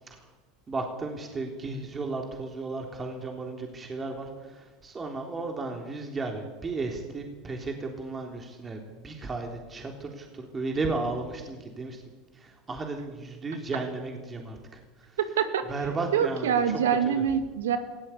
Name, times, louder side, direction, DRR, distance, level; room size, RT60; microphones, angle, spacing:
voice 1, 0.7-12.0 12.3-15.2 15.7-17.2, right 3 dB, 25° right, 2 dB, 3.5 m, -34 dB
voice 2, 15.2-15.6 16.1-17.8, right 8 dB, 80° right, 9 dB, 2.1 m, -25 dB
19.0 x 16.5 x 8.6 m, 1.2 s
hypercardioid pair, 85°, 0 cm